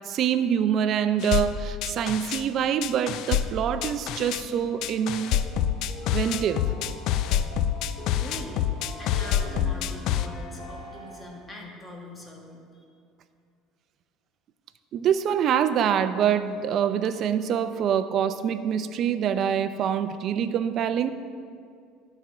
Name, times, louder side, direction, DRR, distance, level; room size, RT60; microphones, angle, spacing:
voice 1, 0.1-5.4 6.1-6.7 14.9-21.1, right 8 dB, 50° right, 11 dB, 0.5 m, -25 dB
sound 1, 1.2-2.4 2.8-4.4 4.8-10.3, left 10 dB, 60° left, 0.4 m, -26 dB
sound 2, 4.3-11.6, left 1 dB, 40° left, 1.6 m, -43 dB
voice 2, 8.1-8.7 9.0-12.8, left 1 dB, 20° left, -1 dB, 1.8 m, -42 dB
11.5 x 4.4 x 6.2 m, 2.3 s
supercardioid pair, 115°, 0 cm